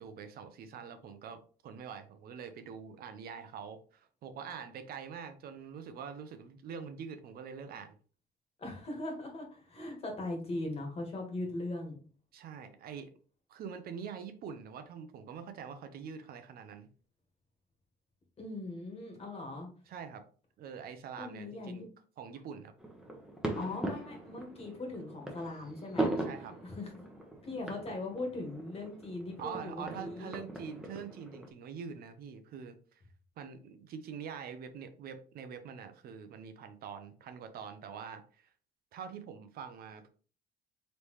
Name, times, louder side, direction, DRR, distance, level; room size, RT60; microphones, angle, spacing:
voice 1, 0.0-8.0 12.3-13.1 13.5-16.9 19.9-20.2 20.6-21.9 22.2-22.7 26.2-26.6 29.4-33.0 33.4-38.5 38.9-40.1, right 7 dB, 65° right, 8 dB, 0.7 m, -45 dB
voice 2, 8.6-12.0 18.4-19.7 21.2-21.9 23.5-26.1 26.6-26.9 27.4-30.4, left 2 dB, 35° left, 2 dB, 1.7 m, -40 dB
sound 1, 22.8-31.5, right 2 dB, 5° right, 1.0 m, -40 dB
4.0 x 3.4 x 3.1 m, 0.40 s
cardioid pair, 110°, 17 cm